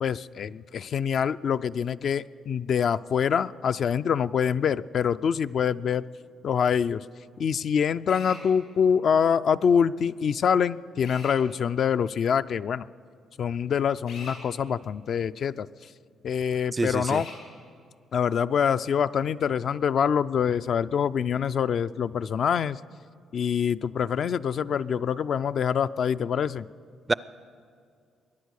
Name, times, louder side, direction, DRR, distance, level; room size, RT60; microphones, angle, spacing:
voice 1, 0.0-6.1 6.4-7.0 7.4-12.9 13.4-15.7 16.2-17.3 18.1-22.8 23.3-26.7, left 7 dB, 60° left, 12 dB, 0.3 m, -25 dB
Drill, 8.1-8.4 11.0-11.4 14.1-14.4 17.0-17.4, left 4 dB, 90° left, 4.9 m, -42 dB
voice 2, 16.7-17.2 27.1-27.2, right 3 dB, 20° right, 19 dB, 0.4 m, -26 dB
22.0 x 10.5 x 6.4 m, 2.2 s
cardioid pair, 90°, 0 cm